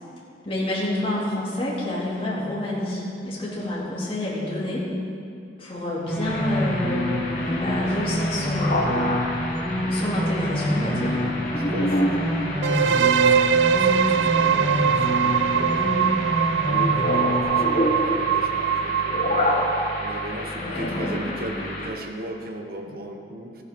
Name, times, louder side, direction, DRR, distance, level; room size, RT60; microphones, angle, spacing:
voice 1, 0.4-4.9 5.6-9.1 9.8-11.2 20.6-21.1, left 1 dB, 30° left, -7 dB, 2.4 m, -28 dB
sound 1, 6.1-17.4, equal, 5° left, 1.7 m, -27 dB
sound 2, 6.2-21.9, left 1 dB, 45° left, 1.6 m, -29 dB
voice 2, 11.6-16.2 16.6-19.5 20.0-23.6, right 1 dB, 55° right, 3 dB, 1.1 m, -36 dB
sound 3, 12.6-20.4, right 8 dB, 80° right, 0.3 m, -22 dB
14.5 x 10.5 x 3.6 m, 2.5 s
head